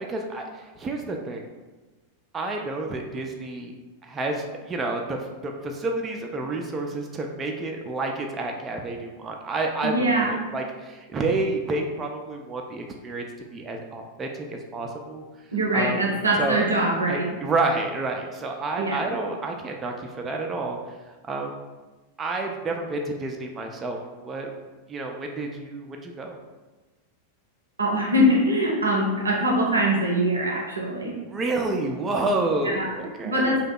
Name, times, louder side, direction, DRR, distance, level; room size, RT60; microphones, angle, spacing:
voice 1, 0.0-1.4 2.3-3.7 4.0-13.2 13.5-15.2 15.7-16.0 16.4-16.6 17.1-20.8 21.3-21.5 22.2-24.0 24.2-24.5 24.9-26.4 31.2-33.6, right 2 dB, 20° right, 2 dB, 0.3 m, -29 dB
voice 2, 9.8-10.4 15.5-17.3 18.8-19.0 27.8-31.2 32.6-32.9 33.2-33.6, equal, 80° right, -2 dB, 0.6 m, -23 dB
2.7 x 2.2 x 3.7 m, 1.2 s
figure-of-eight pair, 90°, 0 cm